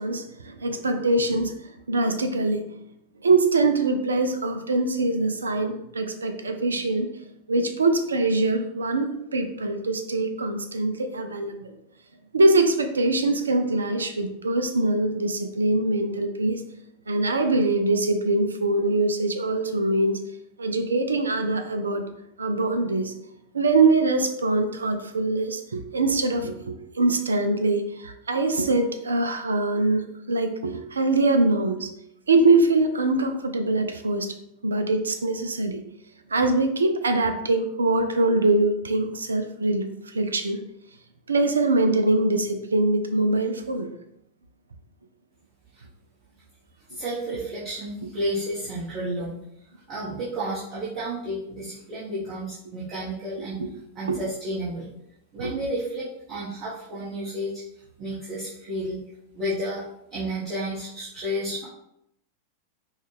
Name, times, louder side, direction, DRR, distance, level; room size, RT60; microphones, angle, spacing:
voice 1, 0.0-2.6 3.2-7.1 7.5-11.7 12.3-16.6 17.1-20.2 20.6-22.0 22.4-23.1 23.5-31.9 32.3-34.3 34.6-35.8 36.3-40.6 41.3-43.9 48.0-48.1 53.6-53.7 54.1-54.2 55.4-55.5, right 2 dB, 75° right, 7 dB, 0.4 m, -23 dB
voice 2, 46.9-49.4 49.9-53.5 53.9-54.9 55.3-57.5 58.0-59.0 59.3-59.8 60.1-61.6, right 1 dB, 40° right, -10 dB, 1.3 m, -31 dB
5.3 x 2.3 x 3.2 m, 0.80 s
figure-of-eight pair, 90°, 0 cm